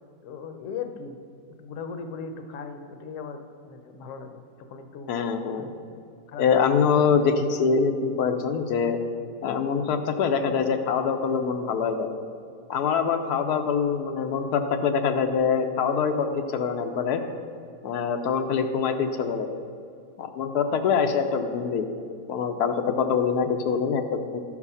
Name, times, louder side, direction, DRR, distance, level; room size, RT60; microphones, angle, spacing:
voice 1, 0.2-1.2 1.6-5.1 5.5-5.7 6.3-6.5, left 5 dB, 60° left, 7 dB, 1.0 m, -38 dB
voice 2, 5.1-5.7 6.4-9.0 9.4-12.1 12.7-17.2 17.8-19.5 20.2-21.9 22.3-24.4, left 6 dB, 90° left, 5 dB, 1.2 m, -24 dB
12.5 x 4.8 x 5.5 m, 2.4 s
omnidirectional pair, 1.6 m